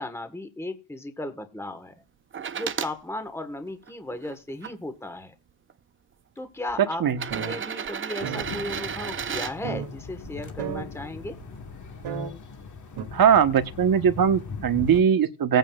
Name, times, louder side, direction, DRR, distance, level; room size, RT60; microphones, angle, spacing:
voice 1, 0.0-1.9 2.5-5.3 6.4-7.1 7.3-11.4, left 1 dB, 5° left, 1.4 m, -35 dB
sound 1, 2.3-2.9 3.7-4.7 5.7-5.8 7.1-9.5 11.4-11.5, right 7 dB, 25° right, 0.5 m, -33 dB
sound 2, 6.7-6.8 7.2-7.6 7.9-8.0 8.2-8.4 9.1-9.2 9.6-9.9 10.2-10.3 10.6-10.9 11.4-11.5 12.0-12.3 13.0-13.1, right 6 dB, 85° right, 2.6 m, -32 dB
sound 3, 8.4-15.0, left 5 dB, 40° left, 1.5 m, -40 dB
voice 2, 13.1-15.6, right 8 dB, 45° right, 1.2 m, -20 dB
19.0 x 9.2 x 2.4 m
cardioid pair, 115°, 47 cm